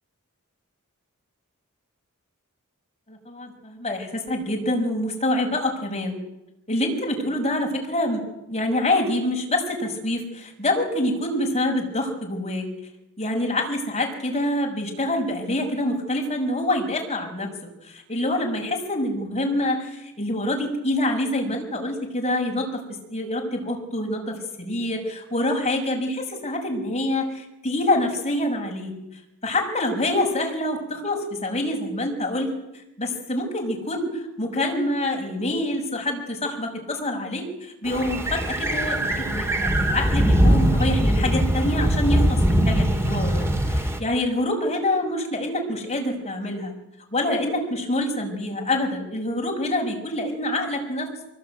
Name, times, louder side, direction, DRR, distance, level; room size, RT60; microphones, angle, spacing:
voice 1, 3.1-6.2 6.7-12.7 13.2-17.5 17.8-28.9 29.4-32.5 33.0-46.7 47.1-51.2, left 1 dB, 30° left, 1 dB, 6.5 m, -26 dB
sound 1, 37.9-44.0, equal, 10° right, 2.7 m, -21 dB
24.0 x 21.5 x 9.4 m, 0.90 s
head